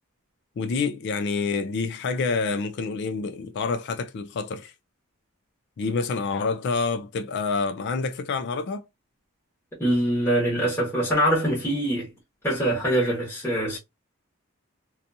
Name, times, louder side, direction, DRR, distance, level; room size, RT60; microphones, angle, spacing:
voice 1, 0.6-4.7 5.8-8.9, left 4 dB, 50° left, 0.3 m, -27 dB
voice 2, 9.8-12.1 12.4-13.8, right 1 dB, 10° left, 1.1 m, -23 dB
2.6 x 2.3 x 2.6 m
head